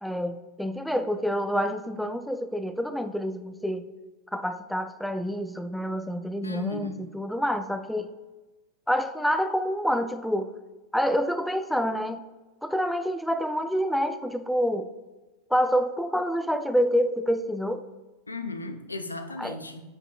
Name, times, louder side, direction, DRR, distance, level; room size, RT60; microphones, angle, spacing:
voice 1, 0.0-3.9 4.3-8.1 8.9-10.5 10.9-12.2 12.6-14.9 15.5-17.8 19.4-19.6, equal, ahead, 10 dB, 0.3 m, -27 dB
voice 2, 6.4-7.1 18.3-19.8, left 3 dB, 80° left, 7 dB, 0.5 m, -35 dB
7.7 x 5.6 x 2.2 m, 1.2 s
figure-of-eight pair, 90°, 0 cm